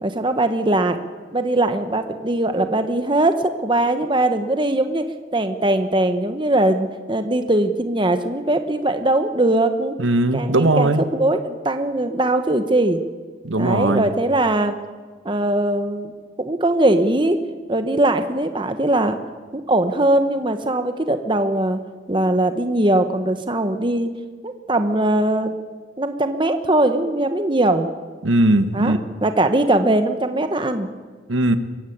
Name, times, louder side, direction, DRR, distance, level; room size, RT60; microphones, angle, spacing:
voice 1, 0.0-1.0 1.3-5.0 5.3-10.0 10.3-13.0 13.5-14.7 15.2-16.1 16.4-17.4 17.7-19.2 19.5-21.8 22.1-24.1 24.4-25.5 26.0-27.9 28.7-28.9 29.2-30.9, right 1 dB, 25° right, 8 dB, 1.2 m, -20 dB
voice 2, 10.0-11.0 13.4-14.1 28.2-29.0 31.3-31.6, right 2 dB, 75° right, 10 dB, 1.3 m, -18 dB
23.5 x 15.0 x 8.8 m, 1.5 s
head